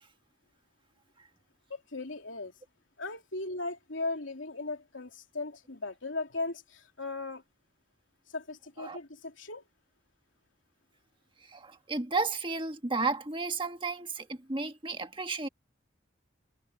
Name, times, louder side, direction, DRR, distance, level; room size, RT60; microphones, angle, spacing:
voice 1, 1.7-2.5 3.0-7.4 8.3-9.6, left 3 dB, 70° left, 3.2 m, -37 dB
voice 2, 11.4-15.5, right 3 dB, 25° right, 1.5 m, -33 dB
head